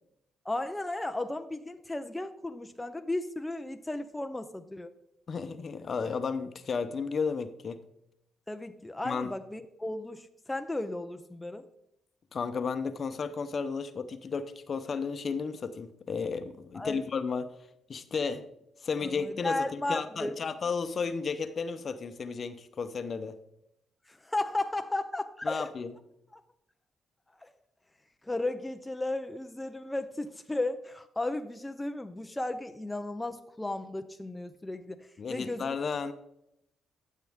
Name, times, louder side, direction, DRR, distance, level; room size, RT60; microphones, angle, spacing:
voice 1, 0.4-4.9 8.5-11.6 16.7-17.0 19.0-20.4 24.1-25.7 26.3-26.4 27.4-27.5 28.2-35.8, left 2 dB, 10° left, 7 dB, 0.5 m, -35 dB
voice 2, 5.3-7.8 9.0-9.3 12.3-17.5 17.9-18.4 18.8-23.4 25.4-25.9 35.2-36.1, left 5 dB, 45° left, 10 dB, 0.8 m, -33 dB
13.0 x 7.4 x 3.6 m, 0.82 s
cardioid pair, 90°, 0 cm